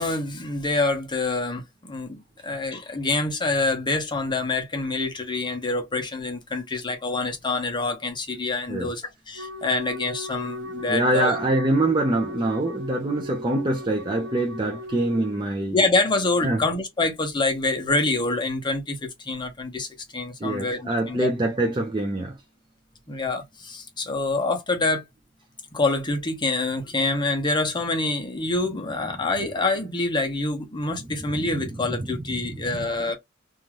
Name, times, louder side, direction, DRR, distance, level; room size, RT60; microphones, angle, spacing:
voice 1, 0.0-11.3 15.7-21.3 23.1-25.0 25.7-33.2, left 2 dB, 25° left, 0.8 m, -26 dB
Wind instrument woodwind instrument, 9.3-15.4, left 1 dB, 65° right, 0.8 m, -37 dB
voice 2, 10.9-15.8 16.4-16.6 20.4-22.3 31.3-32.1 32.5-32.6, right 1 dB, 25° right, 0.5 m, -25 dB
2.6 x 2.3 x 3.1 m
head